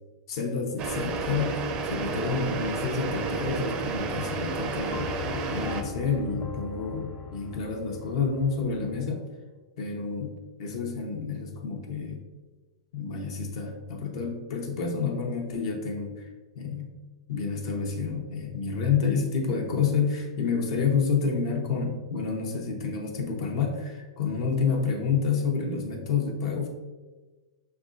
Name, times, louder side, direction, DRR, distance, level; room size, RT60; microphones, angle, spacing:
voice 1, 0.3-5.1 5.5-9.2 9.8-10.3 10.6-12.2 12.9-16.3 16.5-16.9 17.3-26.7, left 5 dB, 60° left, 1 dB, 0.8 m, -29 dB
sound 1, 0.8-5.8, right 4 dB, 30° right, 0.4 m, -31 dB
sound 2, 4.9-9.1, left 6 dB, 30° left, 0.4 m, -40 dB
5.4 x 3.4 x 2.5 m, 1.3 s
hypercardioid pair, 135°, 3 cm